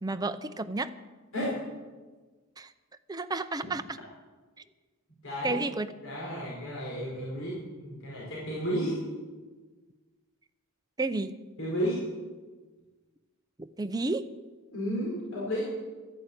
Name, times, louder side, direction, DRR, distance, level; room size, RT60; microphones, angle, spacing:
voice 1, 0.0-0.9 2.6-2.7 3.1-4.0 5.4-5.9 11.0-11.4 13.6-14.3, right 2 dB, 20° right, 9 dB, 0.6 m, -31 dB
voice 2, 5.2-5.6 6.0-9.0 11.6-12.0 14.7-15.6, equal, 60° left, -5 dB, 5.0 m, -32 dB
13.5 x 11.0 x 8.7 m, 1.3 s
head